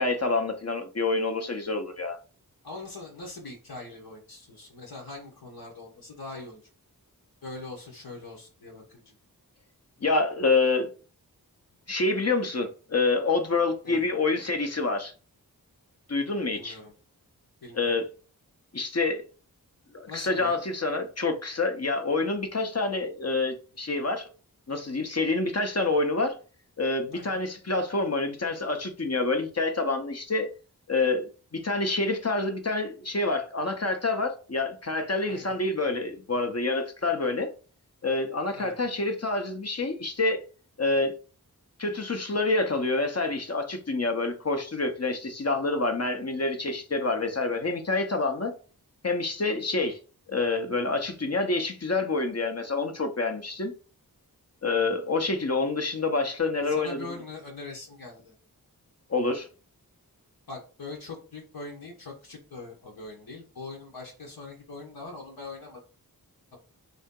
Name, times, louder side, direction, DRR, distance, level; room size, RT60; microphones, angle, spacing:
voice 1, 0.0-2.2 10.0-10.9 11.9-15.1 16.1-16.8 17.7-18.1 18.7-19.2 19.9-24.3 24.7-26.4 26.8-30.5 30.9-31.3 31.5-37.5 38.0-40.4 40.8-41.1 41.8-48.5 49.0-50.0 50.3-53.7 54.6-57.1 59.1-59.5, left 3 dB, 40° left, 0.7 m, -27 dB
voice 2, 2.6-6.6 7.4-9.2 13.8-14.0 16.5-16.9 17.6-17.9 20.1-20.6 27.1-27.4 35.3-35.5 38.6-38.9 56.7-58.3 60.5-65.8, left 3 dB, 75° left, 1.0 m, -42 dB
3.3 x 2.7 x 3.7 m
wide cardioid pair, 55°, 38 cm